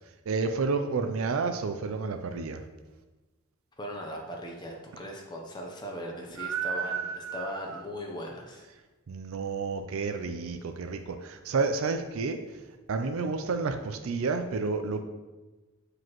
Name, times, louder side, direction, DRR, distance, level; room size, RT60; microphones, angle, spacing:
voice 1, 0.3-2.6 6.4-7.8 9.1-12.4 12.9-15.0, right 4 dB, 65° right, 7 dB, 0.4 m, -30 dB
voice 2, 3.8-8.6, equal, 20° left, 1 dB, 0.6 m, -39 dB
7.7 x 4.9 x 3.0 m, 1.2 s
head